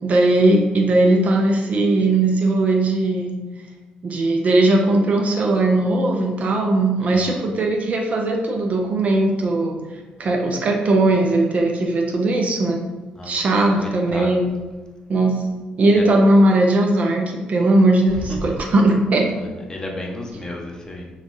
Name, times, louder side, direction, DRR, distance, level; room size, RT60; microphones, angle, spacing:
voice 1, 0.0-3.4 4.0-9.8 10.2-12.8 13.2-14.5 15.1-15.5 15.8-19.3, right 2 dB, 50° right, 1 dB, 0.5 m, -18 dB
voice 2, 7.0-7.4 13.2-13.3 13.8-14.3 19.7-21.1, left 1 dB, 25° left, -1 dB, 0.6 m, -33 dB
3.1 x 2.3 x 2.5 m, 1.2 s
supercardioid pair, 75°, 3 cm